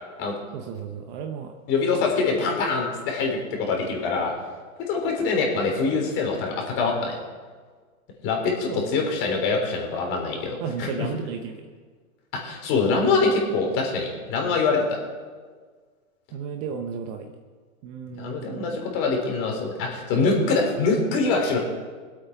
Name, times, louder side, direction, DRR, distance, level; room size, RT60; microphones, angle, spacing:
voice 1, 0.5-1.5 1.9-2.1 8.7-8.9 10.6-11.7 16.3-17.3 17.8-18.8 20.4-20.9, right 6 dB, 30° right, 5 dB, 0.8 m, -34 dB
voice 2, 1.7-4.3 4.9-7.2 8.2-11.1 12.3-15.0 18.2-21.6, left 4 dB, 30° left, 1 dB, 3.5 m, -24 dB
21.5 x 8.4 x 4.7 m, 1.5 s
hypercardioid pair, 145°, 43 cm